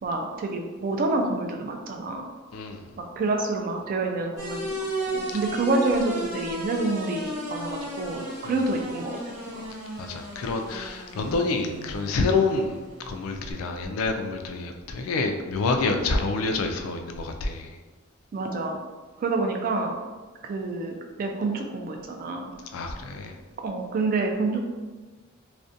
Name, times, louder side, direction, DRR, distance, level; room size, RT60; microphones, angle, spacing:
voice 1, 0.0-2.2 3.0-9.7 18.3-18.8 19.2-20.0 20.4-22.5 23.6-24.6, right 3 dB, 40° right, 3 dB, 0.3 m, -28 dB
voice 2, 2.5-2.9 8.4-8.6 10.0-17.8 22.7-23.4, left 3 dB, 80° left, 5 dB, 0.3 m, -27 dB
sound 1, 4.4-13.5, right 1 dB, 85° right, 1.2 m, -35 dB
2.4 x 2.1 x 2.6 m, 1.3 s
head